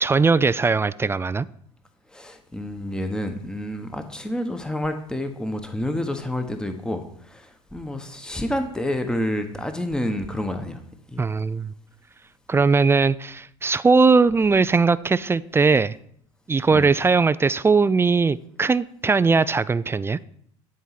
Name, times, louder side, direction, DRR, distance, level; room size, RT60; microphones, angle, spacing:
voice 1, 0.0-1.5 11.2-11.7 12.5-15.9 16.5-20.2, right 4 dB, 15° right, 17 dB, 0.3 m, -19 dB
voice 2, 2.1-10.8 11.1-11.3 16.7-16.9, left 1 dB, 5° left, 7 dB, 1.1 m, -29 dB
11.5 x 4.6 x 5.8 m, 0.65 s
hypercardioid pair, 70°, 16 cm